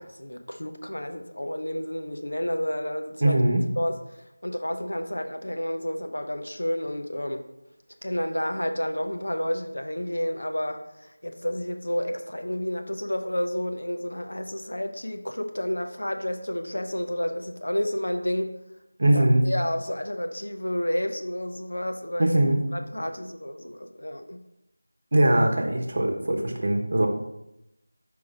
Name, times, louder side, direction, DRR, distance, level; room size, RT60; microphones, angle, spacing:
voice 1, 0.0-3.4 3.8-4.0 4.4-7.5 8.0-18.5 19.1-22.4 22.7-24.4, equal, 90° left, 6 dB, 0.7 m, -30 dB
voice 2, 3.2-3.6 19.0-19.4 22.2-22.6 25.1-27.1, right 1 dB, 45° right, 3 dB, 0.8 m, -21 dB
5.0 x 4.7 x 4.1 m, 0.87 s
figure-of-eight pair, 175°, 0 cm